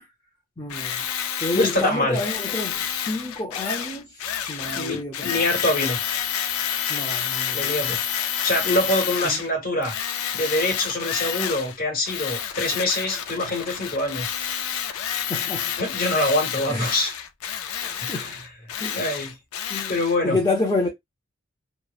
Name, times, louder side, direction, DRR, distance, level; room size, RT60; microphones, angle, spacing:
voice 1, 0.6-1.0 1.4-5.4 6.9-7.8 9.2-9.4 15.1-15.7 16.7-16.9 17.8-18.3 18.8-19.1 19.7-21.0, left 2 dB, 15° left, 0.5 m, -29 dB
Tools, 0.7-9.5 9.8-11.8 12.0-20.2, left 9 dB, 85° left, 0.4 m, -29 dB
voice 2, 1.5-2.2 4.7-6.0 7.5-8.0 8.4-9.9 10.3-14.8 15.8-17.1 18.0-18.5 19.0-19.3 19.9-20.4, left 1 dB, 40° left, 1.2 m, -25 dB
2.9 x 2.1 x 2.3 m
head